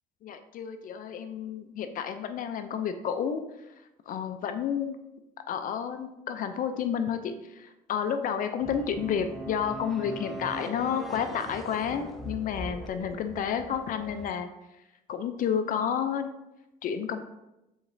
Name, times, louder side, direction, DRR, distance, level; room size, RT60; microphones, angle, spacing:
voice 1, 0.2-3.4 4.1-5.0 5.5-14.5 15.1-16.3 16.8-17.2, left 8 dB, 55° left, 9 dB, 0.4 m, -30 dB
sound 1, 8.6-14.3, equal, ahead, 0.7 m, -41 dB
5.0 x 3.9 x 2.6 m, 0.93 s
cardioid pair, 110°, 17 cm